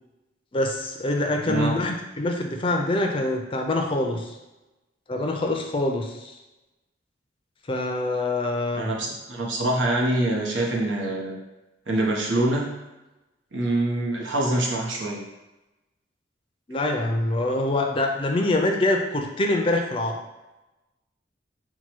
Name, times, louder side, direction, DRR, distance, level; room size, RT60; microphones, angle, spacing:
voice 1, 0.5-4.3 5.1-6.3 7.7-8.9 16.7-20.2, left 2 dB, 30° left, 2 dB, 0.5 m, -25 dB
voice 2, 1.4-1.8 8.7-11.4 11.9-12.7 13.5-15.2, right 1 dB, 85° right, -1 dB, 0.9 m, -25 dB
4.6 x 2.3 x 4.4 m, 1.0 s
head